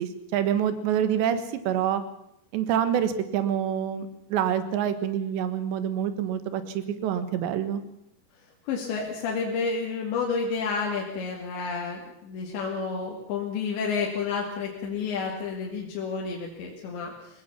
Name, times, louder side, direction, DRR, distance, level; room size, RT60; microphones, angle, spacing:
voice 1, 0.0-2.0 2.5-7.8, right 9 dB, 80° right, 11 dB, 3.7 m, -27 dB
voice 2, 8.7-17.4, left 5 dB, 80° left, -1 dB, 4.6 m, -30 dB
22.0 x 18.5 x 7.2 m, 0.77 s
omnidirectional pair, 5.0 m